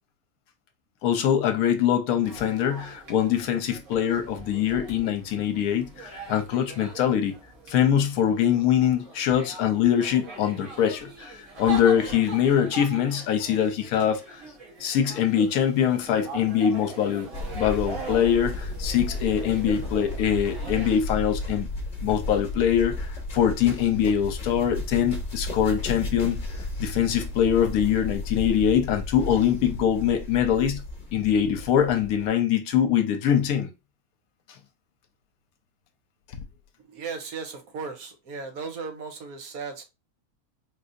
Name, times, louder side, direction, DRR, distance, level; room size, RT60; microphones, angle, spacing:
voice 1, 1.0-7.3 7.7-14.4 14.8-17.3 17.5-21.7 22.0-26.4 26.8-30.8 31.1-33.7, left 9 dB, 80° left, 1.1 m, -23 dB
sound 1, 2.2-21.0, right 4 dB, 60° right, 1.5 m, -41 dB
sound 2, 17.3-32.3, left 2 dB, 40° left, 0.9 m, -34 dB
voice 2, 36.9-39.8, right 5 dB, 75° right, 1.3 m, -36 dB
3.8 x 2.6 x 2.5 m
omnidirectional pair, 1.6 m